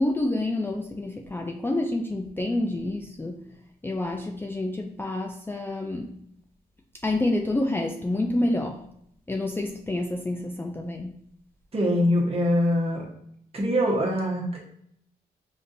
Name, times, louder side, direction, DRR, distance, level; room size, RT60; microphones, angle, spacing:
voice 1, 0.0-3.5 3.8-6.1 7.0-8.8 9.3-11.2, left 1 dB, 15° left, 1 dB, 0.3 m, -28 dB
voice 2, 11.7-13.0 13.5-14.6, equal, 35° right, -2 dB, 1.1 m, -23 dB
5.2 x 2.5 x 2.6 m, 0.72 s
cardioid pair, 85°, 16 cm